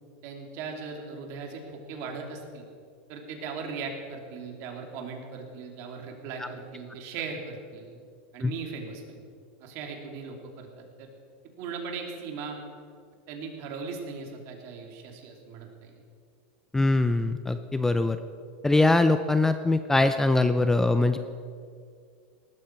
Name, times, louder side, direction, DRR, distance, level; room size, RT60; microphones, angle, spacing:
voice 1, 0.2-2.6 3.1-8.0 8.3-9.2 9.6-11.1 11.6-12.6 13.3-15.9, right 5 dB, 50° right, 2 dB, 2.9 m, -38 dB
voice 2, 16.7-18.2 18.6-21.2, left 2 dB, 5° left, 10 dB, 0.5 m, -22 dB
18.5 x 13.0 x 4.6 m, 2.2 s
supercardioid pair, 135°, 6 cm